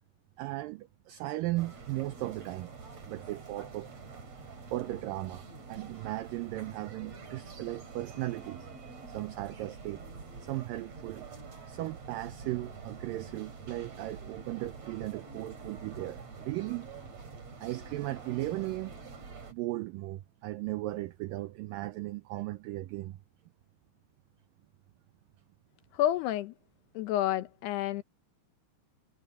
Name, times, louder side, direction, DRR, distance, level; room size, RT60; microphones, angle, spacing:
voice 1, 0.4-2.7 3.1-3.9 4.7-8.7 9.1-10.1 10.4-11.3 11.7-16.9 17.6-18.9 19.5-23.2, right 18 dB, 85° right, 1.9 m, -36 dB
sound 1, 1.5-19.5, right 4 dB, 40° right, 4.8 m, -47 dB
voice 2, 25.9-26.5 26.9-28.0, left 13 dB, 80° left, 3.1 m, -29 dB
omnidirectional pair, 4.7 m